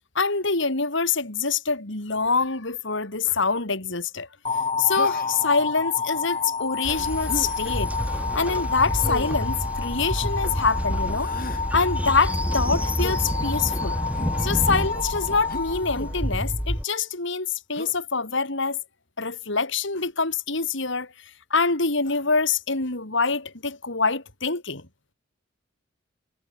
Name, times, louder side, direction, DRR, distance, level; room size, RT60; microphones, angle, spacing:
voice 1, 0.1-4.3 4.8-7.9 8.3-11.3 11.7-14.0 14.4-18.8 19.2-21.1 21.5-24.9, left 4 dB, 65° left, 3.2 m, -25 dB
sound 1, 4.4-16.6, left 5 dB, 30° left, 2.2 m, -30 dB
Human voice, 4.9-5.5 7.2-7.5 9.0-9.4 11.1-11.6 13.0-13.2 14.1-14.4 15.5-16.1 17.7-18.0, left 2 dB, 45° left, 4.5 m, -35 dB
Train, 6.8-16.8, equal, 5° right, 5.9 m, -29 dB
head